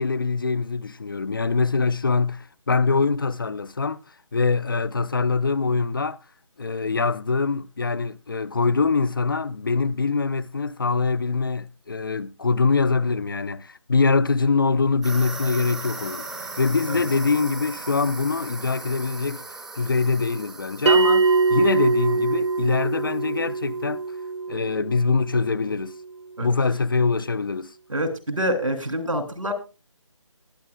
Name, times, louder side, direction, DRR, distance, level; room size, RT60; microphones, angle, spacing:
voice 1, 0.0-4.0 4.3-6.2 6.6-16.2 16.6-19.4 19.8-24.0 24.5-25.9 26.4-27.7, left 4 dB, 45° left, 0.4 m, -23 dB
sound 1, 15.0-23.2, right 3 dB, ahead, 0.6 m, -38 dB
Bell, 20.9-25.9, right 4 dB, 60° right, 0.6 m, -23 dB
voice 2, 27.9-29.5, equal, 80° right, 2.7 m, -26 dB
19.5 x 8.7 x 2.3 m
figure-of-eight pair, 155°, 17 cm